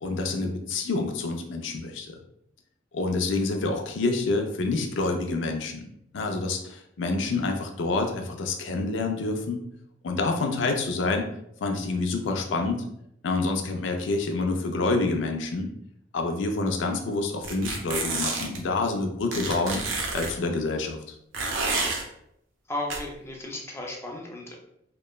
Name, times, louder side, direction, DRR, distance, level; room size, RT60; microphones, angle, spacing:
voice 1, 0.0-2.2 2.9-5.9 6.1-9.6 10.0-11.2 11.6-12.8 13.2-15.7 16.1-19.8 20.1-21.1, left 3 dB, 75° left, 4 dB, 0.4 m, -27 dB
sound 1, 17.4-18.6 19.3-20.3 21.3-22.0 22.9-23.0, right 3 dB, 85° right, 0.5 m, -29 dB
voice 2, 22.7-24.5, left 1 dB, 15° left, 0 dB, 0.4 m, -34 dB
2.9 x 2.0 x 2.2 m, 0.76 s
head